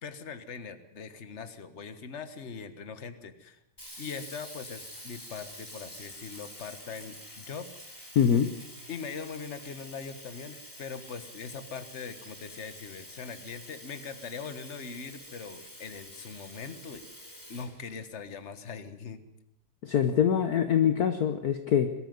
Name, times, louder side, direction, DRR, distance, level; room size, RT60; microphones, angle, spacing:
voice 1, 0.0-3.6 4.0-8.0 8.9-17.0 17.5-19.2, left 5 dB, 40° left, 10 dB, 1.5 m, -41 dB
Sink (filling or washing), 3.8-18.5, equal, 10° left, 4.1 m, -47 dB
voice 2, 8.1-8.5 19.8-21.9, left 8 dB, 55° left, 8 dB, 1.4 m, -24 dB
22.0 x 13.5 x 9.5 m, 0.90 s
omnidirectional pair, 2.2 m